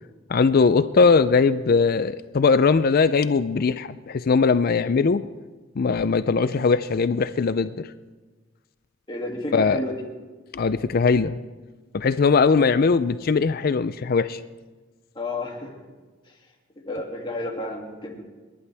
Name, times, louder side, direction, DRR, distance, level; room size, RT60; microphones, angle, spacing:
voice 1, 0.3-5.2 5.8-7.9 9.5-9.8 10.5-11.4 11.9-14.4, left 4 dB, 45° left, 14 dB, 0.4 m, -20 dB
voice 2, 9.1-10.0 15.1-15.7 16.8-18.2, left 1 dB, 25° left, -1 dB, 2.4 m, -31 dB
30.0 x 11.0 x 3.4 m, 1.3 s
head